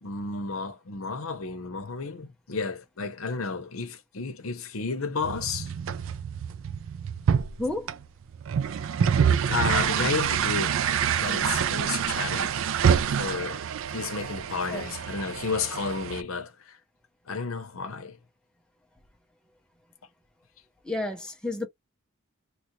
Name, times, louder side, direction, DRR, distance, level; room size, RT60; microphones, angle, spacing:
voice 1, 0.0-5.7 9.0-9.1 9.5-10.8 11.2-12.6 13.1-13.6 13.9-16.8 17.3-18.2, left 4 dB, 75° left, 0.8 m, -32 dB
sound 1, 5.2-16.2, right 8 dB, 65° right, 0.3 m, -27 dB
voice 2, 7.6-7.9 14.7-14.9 20.8-21.7, left 2 dB, 5° left, 0.6 m, -31 dB
3.1 x 2.4 x 3.0 m
head